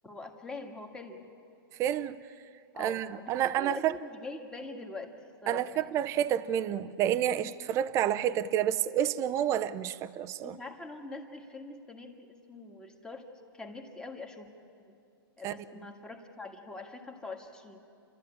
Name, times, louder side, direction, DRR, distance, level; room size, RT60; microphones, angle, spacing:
voice 1, 0.0-1.3 2.7-5.9 10.4-13.3 13.5-14.5 14.9-15.0 15.4-17.8, left 3 dB, 5° left, 1.7 m, -44 dB
voice 2, 1.8-2.2 2.8-3.9 5.5-10.6 15.4-15.5, right 11 dB, 25° right, 0.6 m, -29 dB
29.5 x 13.0 x 9.7 m
hypercardioid pair, 145°, 13 cm